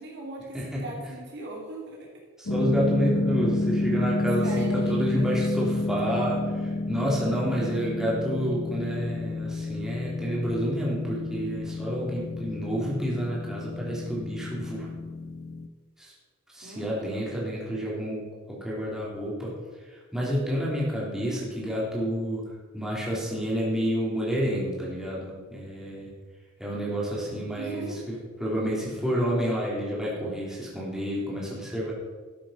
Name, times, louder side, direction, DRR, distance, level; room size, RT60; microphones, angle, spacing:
voice 1, 0.0-2.1 4.4-5.5 16.6-17.2 27.6-28.2, right 2 dB, 55° right, -2 dB, 2.9 m, -39 dB
voice 2, 2.4-14.9 16.0-16.1 16.5-18.2 18.5-19.5 19.8-22.4 22.7-26.1 26.6-31.9, equal, 5° right, -6 dB, 3.4 m, -29 dB
sound 1, 2.5-15.7, left 2 dB, 80° left, 0.9 m, -30 dB
13.0 x 7.6 x 5.8 m, 1.4 s
head